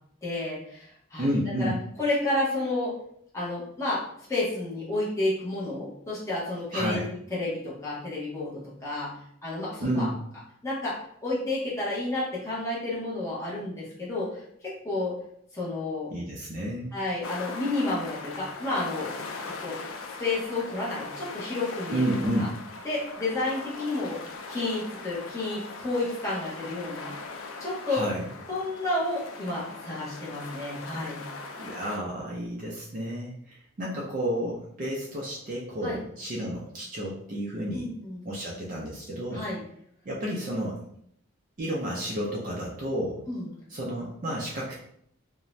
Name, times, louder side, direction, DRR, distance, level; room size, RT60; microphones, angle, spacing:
voice 1, 0.2-1.7 2.0-2.9 3.3-4.0 4.3-7.0 7.3-9.1 9.4-10.1 10.6-11.0 11.2-14.3 14.6-15.1 15.5-16.1 16.9-19.1 19.6-19.8 20.2-22.5 22.8-24.2 24.5-27.1 27.6-28.0 28.5-31.2 35.8-36.0 37.7-38.2 39.3-39.6 43.3-43.5, left 2 dB, 15° left, -8 dB, 0.7 m, -31 dB
voice 2, 1.2-1.8 6.7-7.1 9.8-10.2 16.1-16.9 21.9-22.5 27.9-28.2 31.6-37.9 38.3-39.4 40.1-40.8 41.6-43.2 43.7-44.8, equal, 40° right, -3 dB, 0.4 m, -31 dB
sound 1, 17.2-32.0, left 3 dB, 75° left, 0.3 m, -40 dB
2.5 x 2.0 x 3.0 m, 0.68 s
head